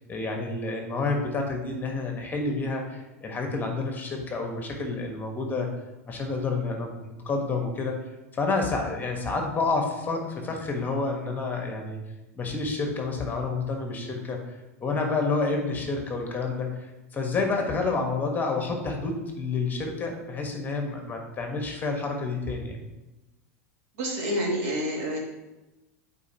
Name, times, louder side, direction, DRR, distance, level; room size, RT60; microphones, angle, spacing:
voice 1, 0.0-5.7 6.1-12.0 12.3-22.8, left 3 dB, 20° left, 2 dB, 1.3 m, -29 dB
voice 2, 24.0-25.2, equal, 70° right, -3 dB, 2.2 m, -28 dB
8.2 x 4.4 x 2.9 m, 1.0 s
hypercardioid pair, 105°, 8 cm